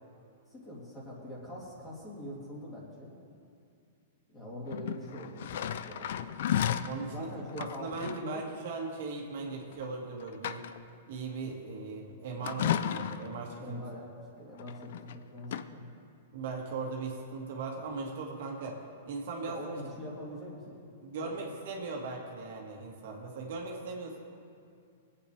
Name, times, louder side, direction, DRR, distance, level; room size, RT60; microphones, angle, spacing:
voice 1, 0.5-3.2 4.3-6.3 7.1-8.5 13.6-15.9 19.5-20.8 21.2-21.3, equal, 15° left, -5 dB, 2.9 m, -43 dB
sound 1, 4.7-7.0 7.5-8.3 9.7-9.9 10.2-10.9 12.4-13.4 14.6-15.2 15.4-15.6, left 10 dB, 65° left, 0.4 m, -33 dB
voice 2, 6.8-7.3 7.6-10.6 11.1-13.8 16.3-18.8 19.1-19.7 21.0-24.2, right 4 dB, 60° right, 0 dB, 1.8 m, -38 dB
20.0 x 8.6 x 3.4 m, 2.4 s
hypercardioid pair, 150°, 0 cm